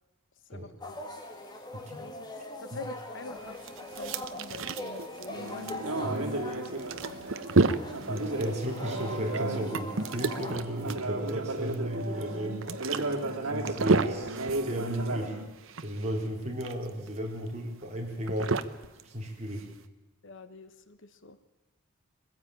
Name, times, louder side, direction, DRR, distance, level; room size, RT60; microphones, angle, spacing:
voice 1, 0.5-1.0 2.0-2.3 2.6-6.2 6.6-7.2 12.7-13.7 20.2-21.4, left 3 dB, 60° left, 11 dB, 1.1 m, -46 dB
sound 1, 0.8-10.5, left 1 dB, 20° left, 2.1 m, -42 dB
voice 2, 1.7-2.0 6.0-6.2 8.1-12.6 13.5-15.4 15.8-18.5 19.0-19.7, equal, 30° right, -1 dB, 4.2 m, -34 dB
sound 2, 3.3-19.9, right 3 dB, 65° right, 0.9 m, -32 dB
sound 3, 5.3-15.5, right 2 dB, 85° right, 2.4 m, -35 dB
22.0 x 15.5 x 9.0 m, 1.1 s
head